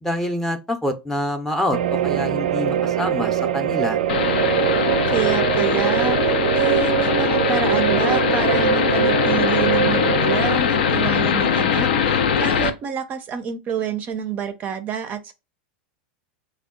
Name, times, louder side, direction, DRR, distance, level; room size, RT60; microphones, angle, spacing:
voice 1, 0.0-4.0, left 1 dB, 5° left, 0.6 m, -26 dB
sound 1, 1.7-10.6, right 10 dB, 85° right, 0.3 m, -22 dB
sound 2, 4.1-12.7, left 7 dB, 85° left, 0.6 m, -21 dB
voice 2, 5.1-6.2 6.5-15.3, right 7 dB, 35° right, 0.5 m, -28 dB
3.5 x 2.2 x 3.6 m
supercardioid pair, 125°, 5 cm